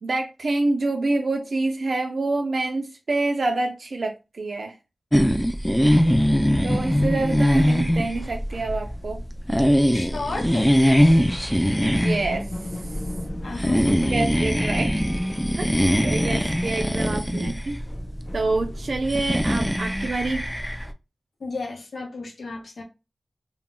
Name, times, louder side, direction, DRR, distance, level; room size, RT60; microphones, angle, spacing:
voice 1, 0.0-4.7 5.7-6.1 6.6-9.2 11.1-11.4 11.8-12.5 14.1-15.1 15.6-15.7 16.0-17.8 18.3-20.5, right 2 dB, 80° right, 0.3 m, -27 dB
sound 1, 5.1-20.9, equal, 5° left, 0.3 m, -22 dB
voice 2, 9.9-10.7 13.4-14.2 21.4-22.8, left 3 dB, 90° left, 0.6 m, -32 dB
sound 2, 11.1-16.7 17.0-19.2, left 1 dB, 45° left, 0.6 m, -39 dB
2.1 x 2.0 x 3.6 m
wide cardioid pair, 55°, 0 cm